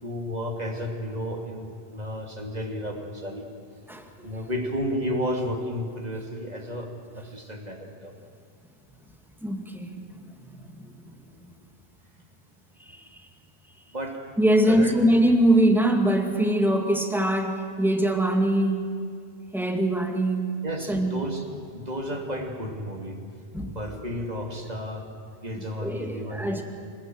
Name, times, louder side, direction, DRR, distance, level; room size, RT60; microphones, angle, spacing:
voice 1, 0.0-3.5 4.2-8.1 13.9-14.2 14.7-14.9 20.6-21.4 21.7-23.2 23.6-25.1 25.4-26.6, equal, 40° right, 2 dB, 2.9 m, -32 dB
voice 2, 3.9-4.4 9.4-11.1 11.4-11.5 12.8-13.2 14.4-18.9 19.5-20.5 20.9-21.2 23.5-23.8 25.6-26.6, right 1 dB, ahead, 3 dB, 2.2 m, -23 dB
26.5 x 19.5 x 7.9 m, 2.3 s
omnidirectional pair, 1.1 m